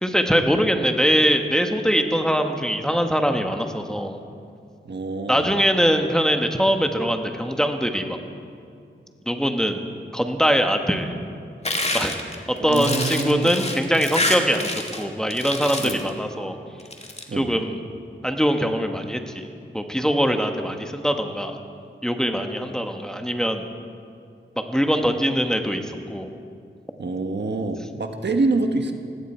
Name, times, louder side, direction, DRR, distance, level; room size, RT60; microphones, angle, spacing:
voice 1, 0.0-4.2 5.3-8.2 9.3-9.8 10.1-11.1 11.9-12.1 12.6-16.6 17.3-17.8 18.2-19.5 19.7-21.6 22.0-23.7 24.7-26.3, equal, 5° left, 5 dB, 1.3 m, -22 dB
voice 2, 4.8-5.5 12.6-13.5 15.8-16.0 17.3-17.5 27.0-28.9, right 3 dB, 60° right, 5 dB, 1.4 m, -26 dB
sound 1, 11.7-15.0 15.3-16.1 16.8-17.2, left 2 dB, 30° left, 2.0 m, -27 dB
18.5 x 16.5 x 4.4 m, 2.3 s
wide cardioid pair, 65°, 20 cm